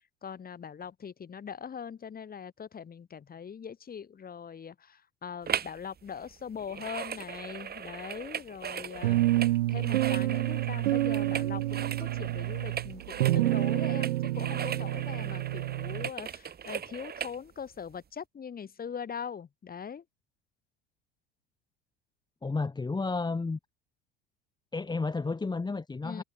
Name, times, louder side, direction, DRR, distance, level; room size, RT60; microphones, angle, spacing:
voice 1, 0.2-20.0 26.0-26.2, left 7 dB, 30° left, 4.4 m, -41 dB
sound 1, 5.5-5.8 6.1-17.4 17.9-18.0, right 8 dB, 30° right, 2.7 m, -38 dB
sound 2, 9.0-16.1, right 16 dB, 80° right, 3.6 m, -28 dB
voice 2, 22.4-23.6 24.7-26.2, left 3 dB, 15° left, 1.7 m, -31 dB
hypercardioid pair, 90°, 30 cm